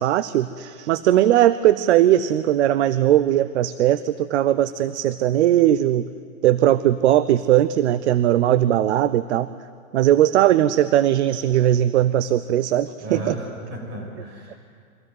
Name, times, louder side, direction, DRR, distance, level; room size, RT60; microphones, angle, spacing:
voice 1, 0.0-6.0 6.4-9.5 9.9-13.4, right 12 dB, 55° right, 15 dB, 0.7 m, -19 dB
voice 2, 13.0-14.6, right 1 dB, 35° right, 0 dB, 7.8 m, -34 dB
23.5 x 16.0 x 9.5 m, 2.2 s
hypercardioid pair, 125°, 41 cm